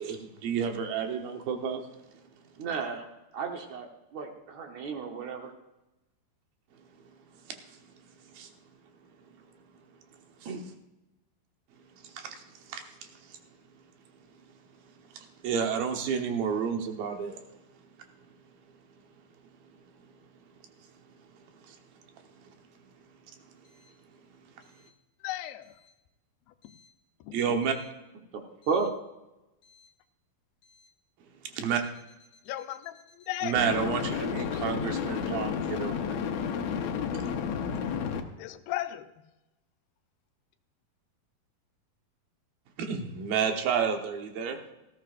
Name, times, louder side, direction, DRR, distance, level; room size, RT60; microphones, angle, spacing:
voice 1, 0.0-2.2 7.0-7.1 7.4-8.5 10.1-10.5 11.9-13.4 15.0-17.4 20.1-20.2 21.3-21.8 22.4-22.5 23.5-23.6 24.3-24.5 27.3-27.8 31.4-31.8 33.4-36.2 42.8-44.6, right 7 dB, 80° right, 4 dB, 3.0 m, -32 dB
voice 2, 2.6-3.1 3.3-5.5 10.5-10.6 28.3-28.9, right 5 dB, 65° right, 3 dB, 2.1 m, -33 dB
voice 3, 25.2-25.8 26.5-26.6 27.2-27.6 32.5-33.6 38.4-39.1, left 14 dB, 85° left, 9 dB, 2.6 m, -36 dB
sound 1, 28.7-28.9 33.6-38.2, left 7 dB, 70° left, 1.7 m, -31 dB
18.5 x 14.5 x 2.5 m, 0.98 s
omnidirectional pair, 4.2 m